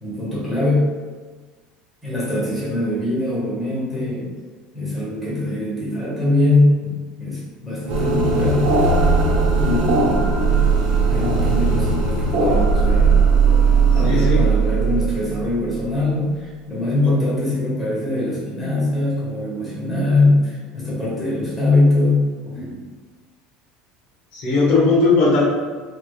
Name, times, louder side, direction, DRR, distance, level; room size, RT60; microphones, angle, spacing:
voice 1, 0.0-0.8 2.0-4.3 4.7-8.7 9.5-10.7 11.1-13.2 13.9-22.8, left 2 dB, ahead, -8 dB, 1.1 m, -22 dB
sound 1, 7.9-15.8, right 4 dB, 55° right, 0.7 m, -17 dB
voice 2, 13.9-14.5 17.0-17.1 24.3-25.4, left 3 dB, 50° left, -4 dB, 0.9 m, -18 dB
3.3 x 3.1 x 2.2 m, 1.4 s
cardioid pair, 145°, 2 cm